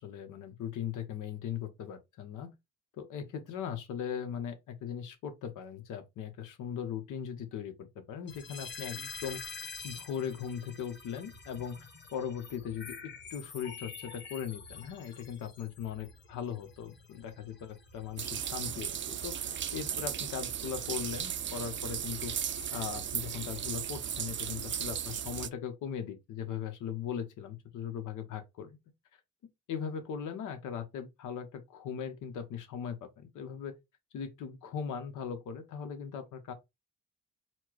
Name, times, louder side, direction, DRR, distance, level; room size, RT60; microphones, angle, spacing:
voice 1, 0.0-2.5 3.0-11.8 12.1-22.3 22.7-28.8 29.7-33.7 34.1-36.5, left 8 dB, 80° left, 1.1 m, -39 dB
sound 1, 8.3-25.3, left 5 dB, 35° left, 1.3 m, -49 dB
sound 2, 18.2-25.5, right 9 dB, 40° right, 0.5 m, -36 dB
4.4 x 2.3 x 4.6 m
cardioid pair, 90°, 30 cm